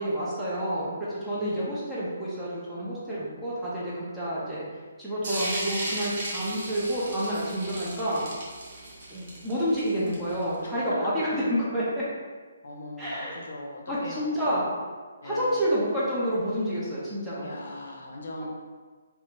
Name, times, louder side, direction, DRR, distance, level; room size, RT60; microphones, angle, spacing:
voice 1, 0.0-4.6 5.0-8.2 9.1-12.0 13.0-13.4 13.9-14.7 15.2-17.5, equal, 5° right, -10 dB, 0.5 m, -29 dB
voice 2, 1.3-1.7 10.6-10.9 12.6-14.6 15.2-15.6 17.3-18.5, left 1 dB, 70° left, 0 dB, 0.7 m, -40 dB
sound 1, 5.2-10.6, right 1 dB, 45° right, 1.0 m, -35 dB
2.6 x 2.3 x 3.6 m, 1.5 s
hypercardioid pair, 175°, 0 cm